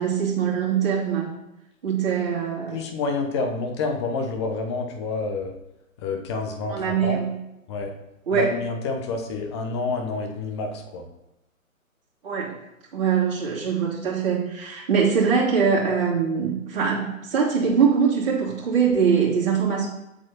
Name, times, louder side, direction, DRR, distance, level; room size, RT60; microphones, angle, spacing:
voice 1, 0.0-1.3 1.8-2.8 6.7-7.3 8.3-8.5 12.2-12.5 12.9-19.9, right 6 dB, 40° right, -5 dB, 2.6 m, -22 dB
voice 2, 2.7-5.5 6.0-7.2 7.7-7.9 8.3-11.1, left 3 dB, 20° left, 3 dB, 0.8 m, -28 dB
7.6 x 7.4 x 2.9 m, 0.91 s
figure-of-eight pair, 125°, 41 cm